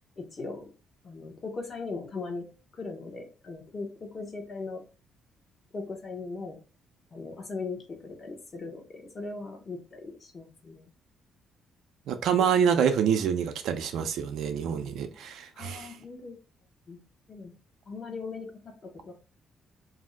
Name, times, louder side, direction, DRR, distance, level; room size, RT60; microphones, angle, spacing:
voice 1, 0.2-0.7 1.0-2.4 2.7-4.8 5.7-6.6 7.1-10.9 15.5-16.4 16.9-17.0 17.3-17.5 17.9-19.1, left 3 dB, 45° left, 0.8 m, -39 dB
voice 2, 12.1-15.9, right 7 dB, 80° right, 0.4 m, -26 dB
2.6 x 2.1 x 3.7 m
cardioid pair, 90°, 0 cm